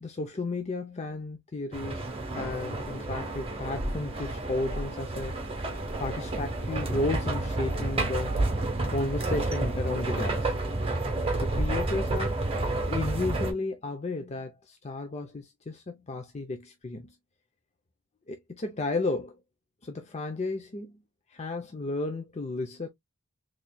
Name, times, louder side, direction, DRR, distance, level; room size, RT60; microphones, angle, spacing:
voice 1, 0.0-2.1 2.3-5.4 6.0-8.3 8.9-10.5 11.4-12.4 12.9-17.2 18.3-19.4 19.8-21.0 21.3-22.9, left 2 dB, 30° left, 0.5 m, -33 dB
sound 1, 1.7-13.5, right 2 dB, 25° right, 1.1 m, -30 dB
4.1 x 3.1 x 2.2 m
head